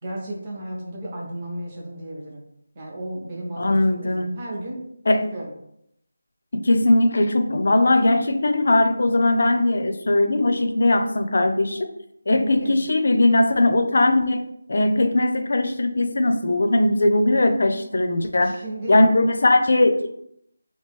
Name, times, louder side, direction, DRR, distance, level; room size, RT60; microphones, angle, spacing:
voice 1, 0.0-2.4 2.7-4.8 5.3-5.5 12.6-12.8 18.4-19.1, right 1 dB, 20° right, -3 dB, 0.7 m, -34 dB
voice 2, 3.6-4.4 5.1-5.2 6.5-11.9 12.3-14.4 14.7-18.6 18.9-20.1, left 2 dB, 50° left, 7 dB, 0.4 m, -19 dB
2.8 x 2.7 x 3.5 m, 0.75 s
figure-of-eight pair, 175°, 0 cm